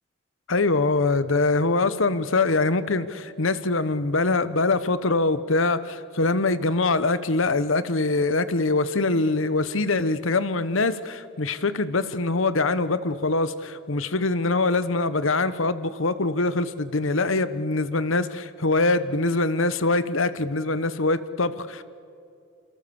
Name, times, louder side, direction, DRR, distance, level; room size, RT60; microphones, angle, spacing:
voice 1, 0.5-21.8, left 3 dB, 70° left, 1.1 m, -23 dB
27.5 x 27.5 x 7.1 m
head